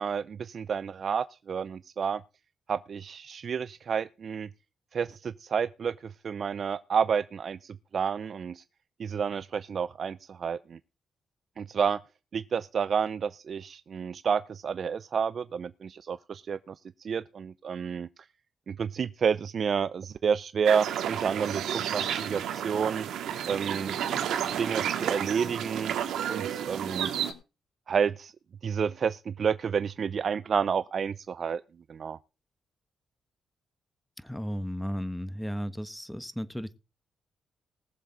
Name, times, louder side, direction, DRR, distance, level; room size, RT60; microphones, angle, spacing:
voice 1, 0.0-2.2 2.7-4.5 4.9-8.6 9.0-10.8 11.6-12.0 12.3-16.7 17.0-18.1 18.7-23.1 23.5-24.0 24.6-26.0 26.3-27.1 27.9-28.3 28.6-31.6 31.9-32.2, right 6 dB, 55° right, 0.6 m, -30 dB
sound 1, 20.6-27.3, right 9 dB, 85° right, 2.3 m, -31 dB
voice 2, 34.2-36.8, equal, 5° left, 1.2 m, -34 dB
20.0 x 7.3 x 3.9 m
cardioid pair, 70°, 0 cm